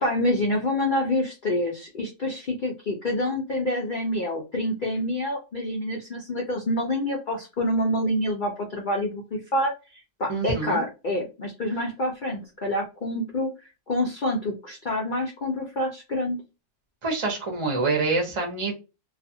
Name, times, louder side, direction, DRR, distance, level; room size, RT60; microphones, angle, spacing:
voice 1, 0.0-9.7 10.2-13.5 13.9-16.4, left 1 dB, 70° left, 0 dB, 0.4 m, -27 dB
voice 2, 10.3-10.8 17.0-18.7, right 3 dB, 35° right, 1 dB, 0.5 m, -26 dB
2.4 x 2.4 x 2.6 m, 0.28 s
omnidirectional pair, 1.6 m